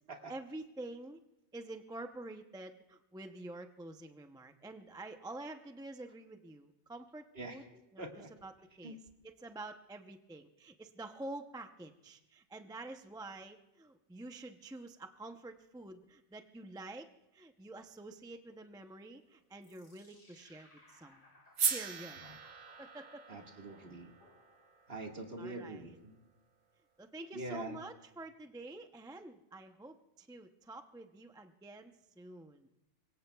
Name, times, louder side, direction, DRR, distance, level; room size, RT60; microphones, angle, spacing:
voice 1, 0.3-1.2 1.5-7.6 7.9-8.0 8.4-8.5 8.8-9.0 9.2-17.1 17.3-21.2 21.6-22.2 22.8-23.2 25.4-25.8 27.0-32.7, right 2 dB, 5° right, 6 dB, 0.4 m, -48 dB
voice 2, 8.0-8.3 8.8-8.9 22.3-22.4 23.3-24.1 24.9-26.1 27.3-27.8, right 2 dB, 50° right, 2 dB, 1.9 m, -44 dB
sound 1, 19.6-24.9, left 2 dB, 75° left, 3.7 m, -64 dB
sound 2, 21.6-25.8, right 6 dB, 70° right, 1.2 m, -39 dB
25.0 x 22.5 x 2.3 m, 0.95 s
omnidirectional pair, 1.3 m